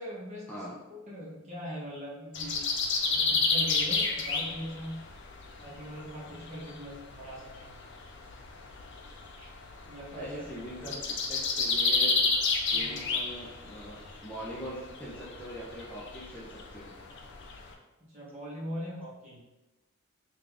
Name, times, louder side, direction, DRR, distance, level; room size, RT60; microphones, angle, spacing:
voice 1, 0.0-0.6 0.9-2.6 3.1-5.0 5.6-7.8 9.4-9.5 9.8-10.4 10.8-10.9 12.7-13.1 18.0-19.5, equal, 35° right, -6 dB, 1.1 m, -41 dB
sound 1, 2.3-17.7, left 4 dB, 55° left, 0.5 m, -31 dB
voice 2, 10.1-12.2 12.7-16.9, equal, 5° left, -7 dB, 0.6 m, -42 dB
3.8 x 2.4 x 3.4 m, 1.0 s
head